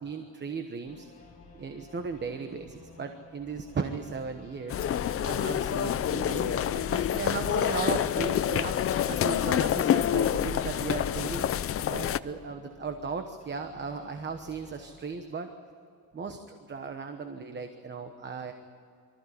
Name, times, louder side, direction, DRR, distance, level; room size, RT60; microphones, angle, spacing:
voice 1, 0.0-1.1 1.6-4.8 5.2-11.5 11.9-15.5 16.1-18.5, right 5 dB, 30° right, 7 dB, 1.1 m, -36 dB
sound 1, 0.8-15.1, left 3 dB, 20° left, 5.5 m, -55 dB
sound 2, 4.7-12.2, left 10 dB, 35° left, 0.5 m, -27 dB
24.5 x 14.5 x 9.9 m, 2.4 s
cardioid pair, 155°, 38 cm